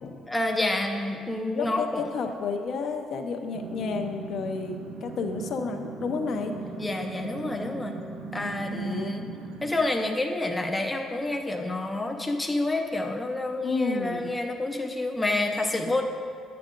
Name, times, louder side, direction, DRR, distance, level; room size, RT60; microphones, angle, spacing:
voice 1, 0.3-2.0 6.8-8.0 8.3-9.2 9.6-16.0, left 2 dB, 10° left, 3 dB, 0.6 m, -28 dB
voice 2, 1.5-6.5 8.7-9.1 13.6-14.3, left 4 dB, 45° left, 5 dB, 0.7 m, -31 dB
sound 1, 3.5-9.8, right 4 dB, 90° right, 0.8 m, -39 dB
10.5 x 7.7 x 3.7 m, 2.2 s
cardioid pair, 175°, 0 cm